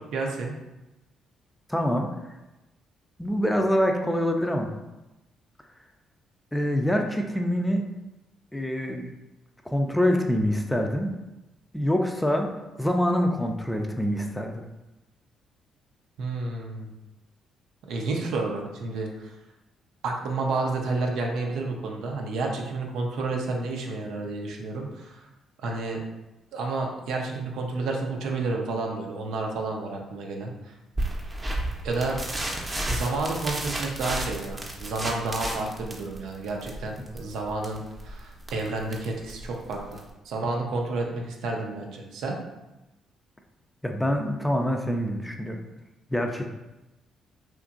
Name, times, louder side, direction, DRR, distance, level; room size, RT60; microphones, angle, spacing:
voice 1, 0.1-0.5 16.2-16.9 17.9-19.3 20.0-25.3 25.6-26.0 26.5-30.7 31.8-32.2 32.9-42.4, right 3 dB, 70° right, 1 dB, 0.5 m, -30 dB
voice 2, 1.7-2.1 3.2-4.7 6.5-7.9 8.5-9.1 9.7-11.1 11.7-14.7 43.8-45.6 46.1-46.5, equal, 10° left, 3 dB, 0.4 m, -25 dB
sound 1, 31.0-40.1, right 1 dB, 25° right, 0.7 m, -33 dB
2.9 x 2.5 x 2.4 m, 1.0 s
hypercardioid pair, 50°, 0 cm